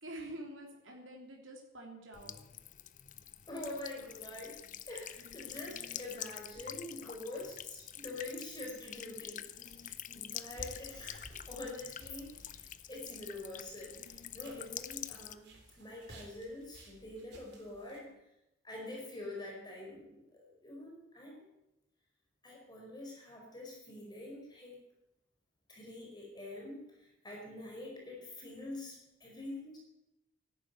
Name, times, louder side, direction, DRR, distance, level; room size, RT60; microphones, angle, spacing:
voice 1, 0.0-2.4 13.8-13.9, right 1 dB, 70° right, 0 dB, 3.3 m, -47 dB
Buzz / Water tap faucet / Trickle dribble, 2.1-15.3, left 11 dB, 40° left, 0.6 m, -46 dB
voice 2, 3.5-4.6 4.9-18.1 18.6-21.4 22.4-24.8 25.7-29.8, left 2 dB, 20° left, -2 dB, 4.7 m, -46 dB
sound 1, 10.5-18.0, right 1 dB, 55° right, 3.7 m, -56 dB
13.5 x 11.5 x 9.4 m, 0.90 s
head